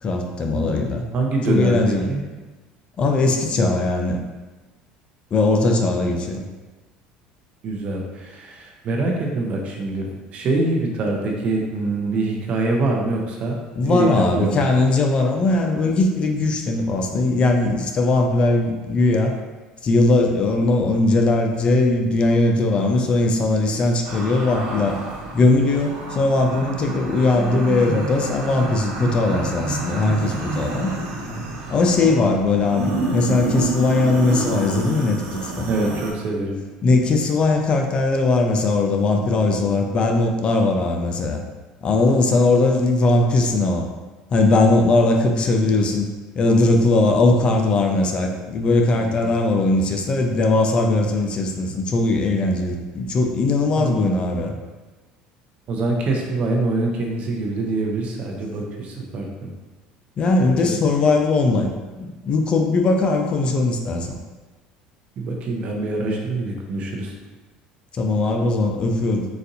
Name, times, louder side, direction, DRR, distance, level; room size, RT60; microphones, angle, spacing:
voice 1, 0.0-1.1 1.5-2.1 3.0-4.2 5.3-6.4 13.8-19.4 19.8-25.0 25.3-30.9 31.7-35.7 36.8-41.4 41.8-43.9 44.3-46.1 46.4-54.5 60.2-64.2 67.9-69.3, left 2 dB, 35° left, 3 dB, 0.4 m, -19 dB
voice 2, 1.1-2.2 7.6-13.6 13.9-14.7 35.7-36.6 48.9-49.4 53.8-54.4 55.7-59.5 60.6-60.7 65.2-67.1, right 2 dB, 50° right, 0 dB, 0.7 m, -25 dB
sound 1, 24.0-36.1, right 2 dB, 80° right, 0.8 m, -29 dB
4.0 x 2.5 x 2.7 m, 1.2 s
supercardioid pair, 105°, 3 cm